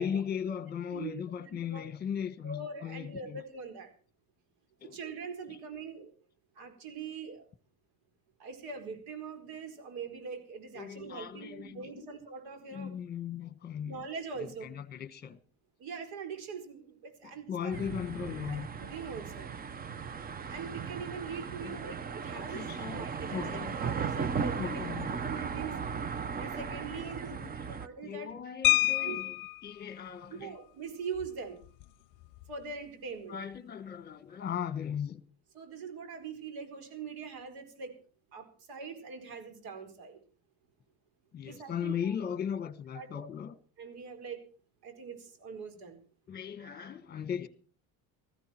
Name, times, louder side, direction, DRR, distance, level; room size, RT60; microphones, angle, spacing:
voice 1, 0.0-3.4 4.8-5.0 5.5-5.6 10.7-12.1 12.7-14.1 14.4-15.4 17.2-18.7 21.6-21.8 22.3-23.8 24.6-25.1 26.9-27.6 28.0-30.6 33.3-35.2 41.3-43.5 46.3-47.5, left 8 dB, 25° left, 1.3 m, -38 dB
voice 2, 2.4-3.9 4.9-6.1 6.6-7.4 8.4-12.9 13.8-14.7 15.8-17.8 18.5-19.5 20.5-23.5 23.8-24.6 25.0-25.7 26.4-27.4 27.7-28.3 28.9-29.2 30.3-31.6 32.5-33.4 35.5-37.9 38.3-40.2 41.4-42.1 42.9-43.3 43.8-44.4 44.8-46.0, right 5 dB, 90° right, 4.6 m, -42 dB
sound 1, 17.7-27.9, right 6 dB, 25° right, 0.6 m, -37 dB
sound 2, 28.6-29.7 31.2-31.3 31.6-31.8 32.2-32.5, left 19 dB, 60° left, 0.6 m, -27 dB
19.5 x 14.5 x 4.4 m
cardioid pair, 160°, 36 cm